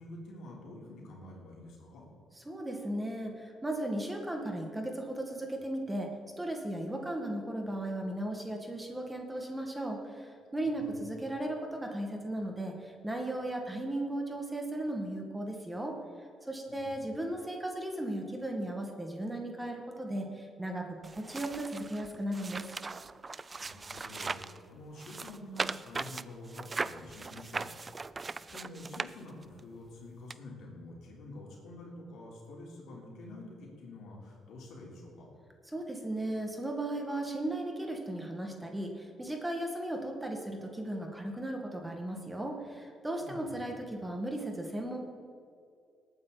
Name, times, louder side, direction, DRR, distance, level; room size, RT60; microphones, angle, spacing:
voice 1, 0.0-2.1 10.8-10.9 16.7-17.0 23.6-27.7 28.1-35.3 43.2-43.7, left 2 dB, 80° left, -2 dB, 3.6 m, -48 dB
voice 2, 2.5-6.1 6.4-16.0 16.4-20.9 21.1-22.7 35.7-45.0, right 1 dB, 10° right, 2 dB, 1.9 m, -36 dB
sound 1, 21.0-24.6 25.0-29.6 30.3-30.4, right 4 dB, 30° right, 0.4 m, -39 dB
19.0 x 9.0 x 4.1 m, 2.4 s
cardioid pair, 90°, 0 cm